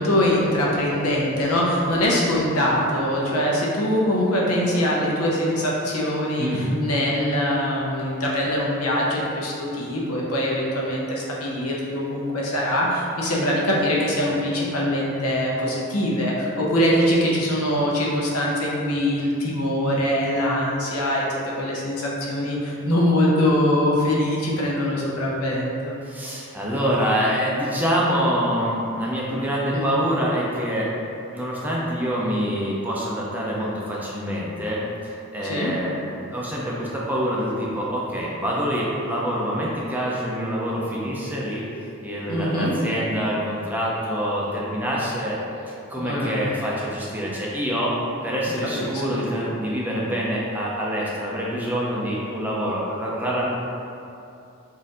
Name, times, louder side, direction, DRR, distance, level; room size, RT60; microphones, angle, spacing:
voice 1, 0.0-26.0 29.7-29.9 35.5-35.7 42.3-42.7 46.0-46.4 48.8-49.2, left 1 dB, 85° left, -4 dB, 0.8 m, -23 dB
voice 2, 6.4-6.8 26.0-45.4 45.7-53.5, equal, 10° right, -5 dB, 0.4 m, -26 dB
4.2 x 2.6 x 3.7 m, 2.7 s
head